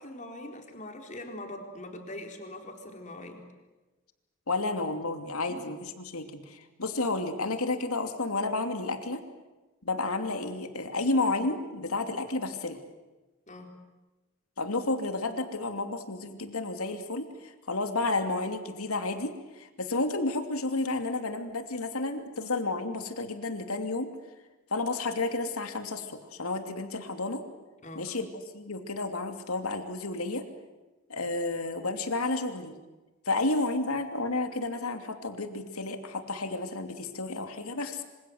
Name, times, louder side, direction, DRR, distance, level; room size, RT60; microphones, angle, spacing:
voice 1, 0.0-3.4 5.5-5.6 13.5-13.8 27.8-28.1, left 1 dB, 35° left, 3 dB, 4.2 m, -42 dB
voice 2, 4.5-9.2 9.8-12.8 14.6-24.1 24.7-27.4 27.9-28.3 28.5-30.4 31.1-32.7 33.2-38.0, left 2 dB, 80° left, 7 dB, 2.8 m, -31 dB
26.5 x 26.5 x 8.0 m, 1.1 s
head